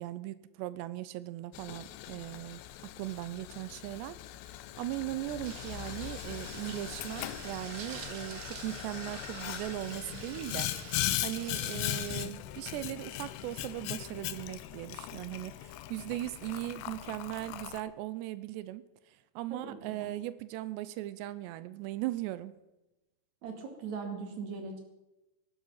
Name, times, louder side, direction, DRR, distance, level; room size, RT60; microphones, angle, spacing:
voice 1, 0.0-2.6 3.0-4.2 4.8-10.7 11.2-18.8 19.1-22.5, right 15 dB, 85° right, 15 dB, 2.8 m, -38 dB
Boiling, 1.5-17.8, left 14 dB, 80° left, 2.9 m, -39 dB
sound 1, 5.4-12.2, right 7 dB, 70° right, 1.5 m, -47 dB
voice 2, 19.5-20.1 23.4-24.8, right 5 dB, 45° right, 4 dB, 3.3 m, -40 dB
18.0 x 12.0 x 5.7 m, 1.0 s
omnidirectional pair, 4.9 m